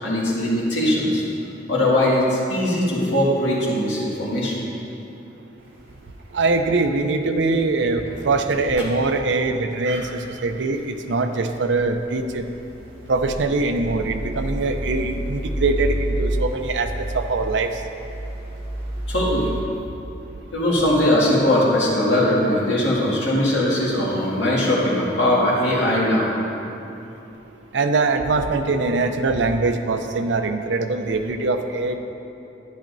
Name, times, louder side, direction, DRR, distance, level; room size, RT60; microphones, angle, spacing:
voice 1, 0.0-1.2 1.7-4.6 9.8-10.0 19.1-19.5 20.5-26.3, left 1 dB, 90° left, -6 dB, 2.0 m, -20 dB
sound 1, 5.6-5.9 6.2-6.8 7.2-7.3 7.8-8.8 10.9-19.6, right 1 dB, 30° right, 1.6 m, -30 dB
voice 2, 6.3-12.4 13.1-17.8 27.7-32.0, right 3 dB, 85° right, 6 dB, 0.5 m, -22 dB
10.5 x 10.0 x 2.7 m, 2.9 s
head